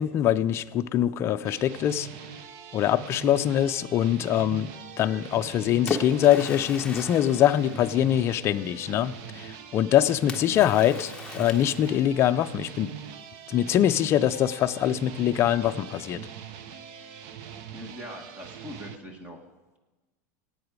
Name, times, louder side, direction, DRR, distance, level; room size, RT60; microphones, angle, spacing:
voice 1, 0.0-2.1 2.7-4.7 5.0-12.9 13.5-16.3, left 11 dB, 30° left, 9 dB, 0.5 m, -23 dB
sound 1, 1.4-19.0, right 8 dB, 55° right, 0.8 m, -42 dB
Splash splatter, 5.3-8.5 10.3-12.2, left 4 dB, 10° left, 1.0 m, -37 dB
voice 2, 17.7-19.4, equal, 15° right, 4 dB, 1.3 m, -41 dB
15.5 x 8.9 x 4.7 m, 1.2 s
supercardioid pair, 145°, 9 cm